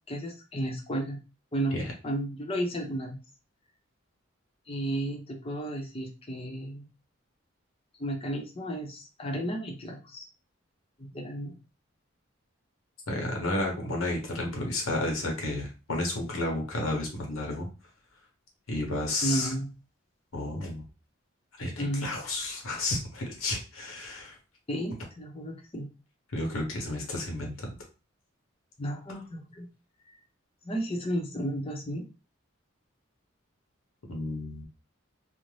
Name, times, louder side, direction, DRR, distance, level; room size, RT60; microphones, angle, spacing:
voice 1, 0.1-1.2 1.5-1.8 2.0-3.2 4.7-6.9 8.0-10.3 11.0-11.6 19.2-19.7 21.6-22.1 24.7-25.9 28.8-29.7 30.6-32.1, right 1 dB, 30° left, 1 dB, 0.6 m, -33 dB
voice 2, 13.1-17.7 18.7-19.5 20.3-20.8 21.6-24.4 26.3-27.7 34.1-34.6, left 2 dB, 90° left, 1 dB, 0.9 m, -32 dB
2.6 x 2.0 x 3.1 m, 0.31 s
head